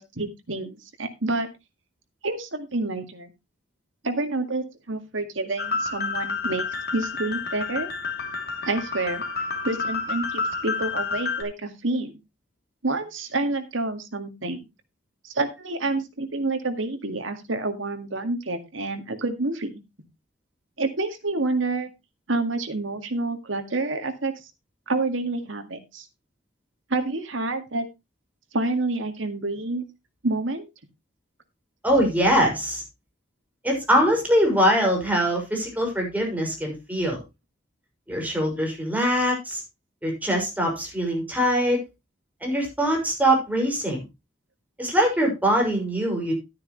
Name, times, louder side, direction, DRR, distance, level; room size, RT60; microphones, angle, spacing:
voice 1, 0.0-1.5 2.2-3.3 4.0-6.6 6.9-7.9 8.7-9.2 9.6-12.2 12.8-14.6 15.2-19.7 20.8-21.9 22.3-24.3 24.9-26.1 26.9-27.9 28.5-29.8 30.2-30.7 32.0-32.1, right 2 dB, 85° right, 7 dB, 2.0 m, -28 dB
sound 1, 5.6-11.4, left 4 dB, 55° left, 3.0 m, -30 dB
voice 2, 31.8-32.8 33.6-37.2 38.1-39.6 40.0-41.8 42.4-44.0 44.8-46.3, equal, 10° right, 1 dB, 5.9 m, -23 dB
12.5 x 9.7 x 3.1 m, 0.23 s
head